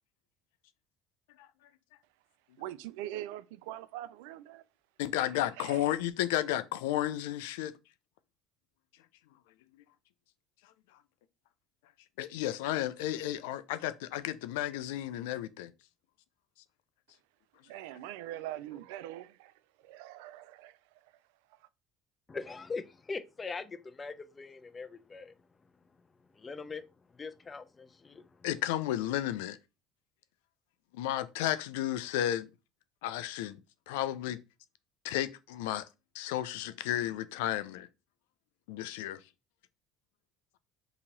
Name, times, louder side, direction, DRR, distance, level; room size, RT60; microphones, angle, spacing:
voice 1, 2.6-4.6 5.2-5.3 5.6-5.8 17.7-19.3 19.9-20.8, right 13 dB, 80° right, 0.3 m, -42 dB
voice 2, 5.0-7.7 12.2-15.7 28.4-29.6 31.0-32.5 33.0-33.6 33.9-34.4 35.0-35.9 36.2-37.9 38.7-39.2, left 13 dB, 85° left, 0.3 m, -32 dB
voice 3, 22.3-25.3 26.3-28.5, left 4 dB, 25° left, 0.5 m, -42 dB
2.9 x 2.7 x 3.8 m
supercardioid pair, 80°, 0 cm